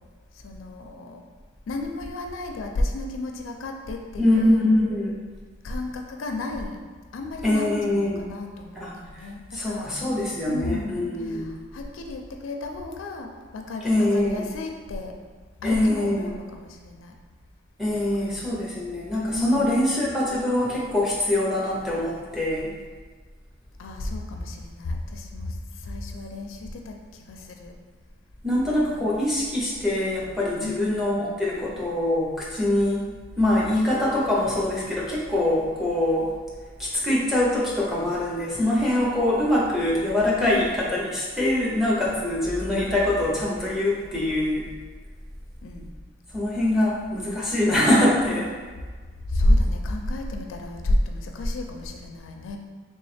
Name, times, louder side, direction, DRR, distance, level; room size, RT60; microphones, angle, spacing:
voice 1, 0.3-1.2 1.7-4.6 5.6-6.8 7.1-9.9 10.5-15.2 15.6-17.1 18.2-18.4 19.3-19.9 23.8-27.8 28.9-29.1 30.6-31.0 40.4-40.7 45.6-45.9 49.3-52.6, left 1 dB, 80° left, 3 dB, 0.4 m, -31 dB
voice 2, 4.2-5.2 7.4-8.2 8.8-8.9 9.5-11.5 13.8-14.5 15.6-16.4 17.8-22.7 28.4-33.1 33.4-36.3 36.8-44.7 46.3-48.5, left 1 dB, ahead, -6 dB, 0.6 m, -23 dB
3.2 x 3.1 x 3.2 m, 1.5 s
head